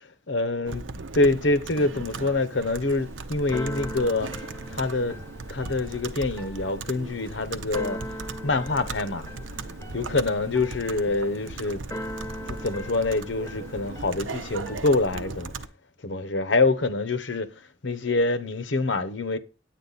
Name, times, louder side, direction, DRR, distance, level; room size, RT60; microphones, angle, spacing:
voice 1, 0.0-4.3 4.7-5.2 5.5-8.0 8.4-9.3 9.9-11.8 12.5-15.5 16.0-19.4, left 3 dB, 70° left, 1.0 m, -26 dB
Computer keyboard, 0.7-15.7, right 3 dB, 90° right, 0.9 m, -38 dB
Keyboard (musical), 2.9-15.0, equal, 15° left, 0.9 m, -40 dB
10.0 x 8.7 x 4.1 m
head